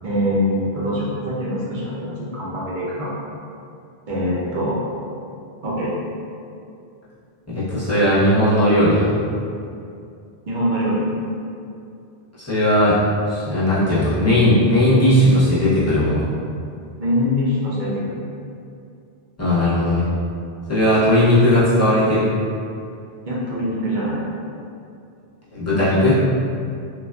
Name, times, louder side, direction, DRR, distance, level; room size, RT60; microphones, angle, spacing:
voice 1, 0.0-3.2 4.1-4.8 5.6-5.9 10.5-11.1 17.0-18.2 23.2-24.2, equal, 55° right, -6 dB, 0.7 m, -23 dB
voice 2, 7.5-9.1 12.4-13.0 13.3-16.2 19.4-20.0 20.7-22.3 25.5-26.2, left 1 dB, 15° left, -11 dB, 0.7 m, -17 dB
3.2 x 2.2 x 2.3 m, 2.5 s
omnidirectional pair, 1.1 m